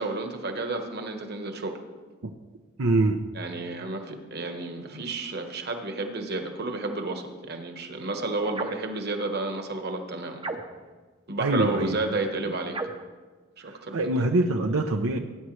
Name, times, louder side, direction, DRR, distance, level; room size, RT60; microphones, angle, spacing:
voice 1, 0.0-1.8 3.3-10.4 11.3-12.8 13.6-14.0, right 2 dB, 50° right, 5 dB, 1.3 m, -31 dB
voice 2, 2.8-3.2 11.4-12.0 13.7-15.2, right 2 dB, 80° right, 4 dB, 0.7 m, -24 dB
sound 1, 8.5-8.9 10.4-11.0 12.7-13.1, right 3 dB, 25° right, 0.7 m, -35 dB
19.5 x 9.5 x 3.2 m, 1.4 s
head